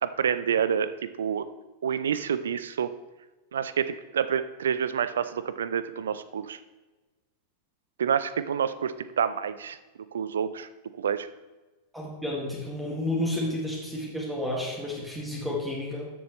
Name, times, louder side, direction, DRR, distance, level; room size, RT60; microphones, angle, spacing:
voice 1, 0.0-1.5 1.8-2.9 3.5-6.6 8.0-9.8 10.1-10.7 11.0-11.3, right 8 dB, 65° right, 14 dB, 0.5 m, -28 dB
voice 2, 11.9-16.1, left 1 dB, 5° right, -3 dB, 2.0 m, -31 dB
13.0 x 7.0 x 3.1 m, 1.2 s
figure-of-eight pair, 90°, 0 cm